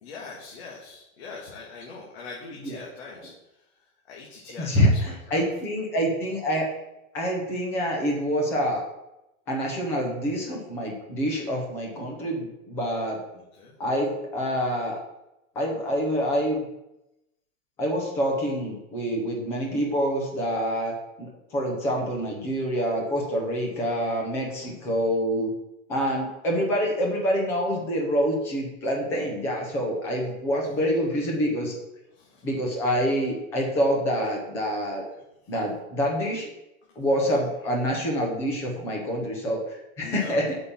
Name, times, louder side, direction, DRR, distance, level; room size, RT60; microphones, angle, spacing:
voice 1, 0.0-5.4 13.3-13.7 24.6-25.1 32.1-32.5 35.4-35.5 36.9-37.4 40.0-40.5, left 4 dB, 45° left, -3 dB, 1.9 m, -43 dB
voice 2, 4.6-6.7 7.1-8.8 9.5-13.2 13.8-15.0 15.6-16.7 17.8-25.5 25.9-31.8 32.4-35.0 35.5-36.5 37.0-40.6, equal, 5° left, 0 dB, 0.5 m, -26 dB
8.3 x 5.4 x 7.2 m, 0.91 s
supercardioid pair, 180°, 42 cm